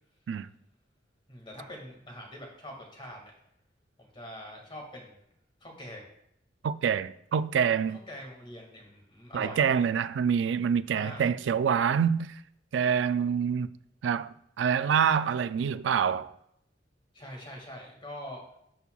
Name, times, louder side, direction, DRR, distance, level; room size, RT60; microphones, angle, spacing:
voice 1, 1.3-3.3 4.0-5.2 5.6-6.1 7.8-9.6 11.0-11.2 17.1-18.4, equal, 30° left, 1.9 m, -44 dB
voice 2, 6.6-8.0 9.3-12.4 12.7-13.7 14.0-16.3, right 7 dB, 75° right, 0.3 m, -26 dB
12.5 x 4.3 x 2.3 m
head